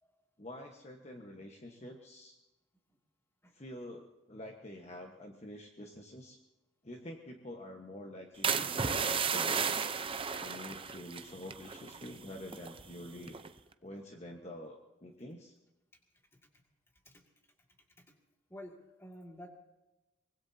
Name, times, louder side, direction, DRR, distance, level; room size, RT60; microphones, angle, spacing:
voice 1, 0.4-2.4 3.5-6.4 6.8-10.0 10.4-13.4 13.8-15.6, left 1 dB, 35° left, 2 dB, 1.3 m, -47 dB
sound 1, 8.4-12.2 12.4-12.8 13.3-13.6, right 6 dB, 25° right, 0.7 m, -34 dB
voice 2, 18.5-19.5, left 1 dB, 10° left, 1 dB, 2.4 m, -51 dB
24.0 x 20.5 x 2.8 m, 1.0 s
head